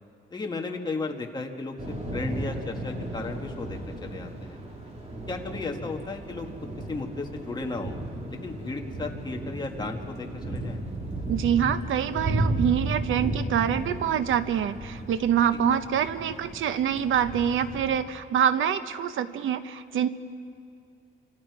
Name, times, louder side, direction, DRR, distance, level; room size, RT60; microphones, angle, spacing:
voice 1, 0.3-4.6 5.3-6.5 6.9-8.0 8.3-10.8 15.7-15.8, left 3 dB, 20° left, 2 dB, 1.7 m, -35 dB
Thunder / Rain, 1.8-17.9, right 1 dB, 30° right, 3.3 m, -34 dB
voice 2, 11.3-20.1, right 9 dB, 70° right, 11 dB, 0.9 m, -25 dB
27.0 x 25.5 x 4.8 m, 2.4 s
cardioid pair, 140°, 21 cm